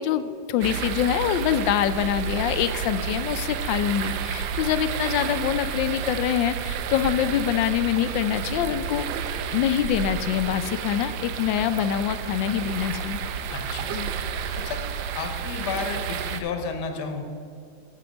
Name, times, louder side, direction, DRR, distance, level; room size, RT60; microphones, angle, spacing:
voice 1, 0.0-9.0 9.5-13.2 13.9-14.1, left 10 dB, 80° left, 12 dB, 1.3 m, -25 dB
sound 1, 0.6-16.4, right 7 dB, 85° right, 1.3 m, -31 dB
voice 2, 13.5-13.9 14.6-14.8 15.1-17.2, left 5 dB, 65° left, 5 dB, 1.6 m, -32 dB
9.2 x 6.9 x 6.2 m, 2.4 s
omnidirectional pair, 2.0 m